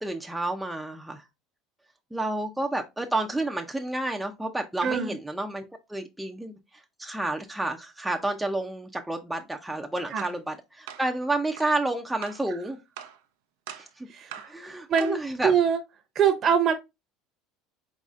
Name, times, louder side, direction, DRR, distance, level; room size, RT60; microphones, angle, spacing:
voice 1, 0.0-1.2 2.1-6.6 7.0-12.8 13.8-14.1 14.4-15.5, right 2 dB, 5° right, 0.5 m, -30 dB
voice 2, 4.8-5.1 10.1-10.2 14.1-15.8 16.1-16.7, right 7 dB, 45° right, 0.9 m, -24 dB
sound 1, 10.2-10.4 10.9-11.1 11.6-11.7 12.2-12.5 13.0-13.2 13.7-13.9 14.3-14.6 15.0-15.3, right 10 dB, 90° right, 0.5 m, -42 dB
4.1 x 4.0 x 2.4 m
supercardioid pair, 115°, 0 cm